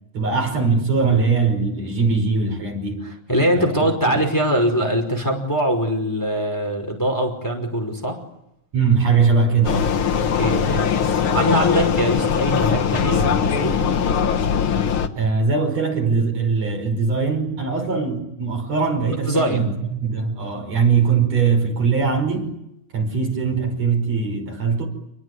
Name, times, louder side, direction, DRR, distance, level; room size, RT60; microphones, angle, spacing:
voice 1, 0.1-3.1 3.5-4.2 8.7-9.9 15.2-22.6 22.9-24.9, right 5 dB, 60° right, 6.5 m, -21 dB
voice 2, 3.3-8.2 10.3-10.9 11.3-13.8 19.2-19.7, equal, 5° left, 5.0 m, -22 dB
Vehicle, 9.6-15.1, left 7 dB, 50° left, 1.9 m, -21 dB
28.5 x 21.0 x 9.6 m
omnidirectional pair, 3.4 m